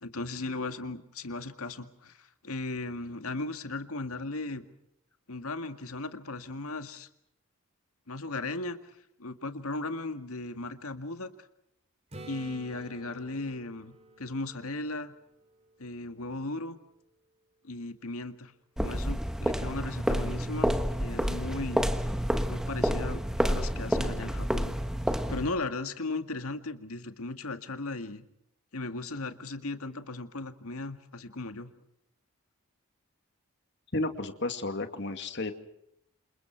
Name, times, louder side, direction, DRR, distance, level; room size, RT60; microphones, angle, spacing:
voice 1, 0.0-4.7 5.3-7.1 8.1-8.8 9.2-11.3 12.3-15.1 15.8-16.8 17.6-18.5 18.8-20.7 21.0-21.8 22.5-24.8 25.1-28.2 28.7-31.7, left 2 dB, 80° left, 8 dB, 2.0 m, -37 dB
Acoustic guitar / Strum, 12.1-15.9 20.7-20.8, right 2 dB, 30° right, 3.1 m, -50 dB
sound 1, 18.8-25.6, equal, 5° right, 1.2 m, -29 dB
voice 2, 33.9-35.5, left 2 dB, 50° left, 7 dB, 2.3 m, -32 dB
28.5 x 28.0 x 4.6 m, 0.77 s
head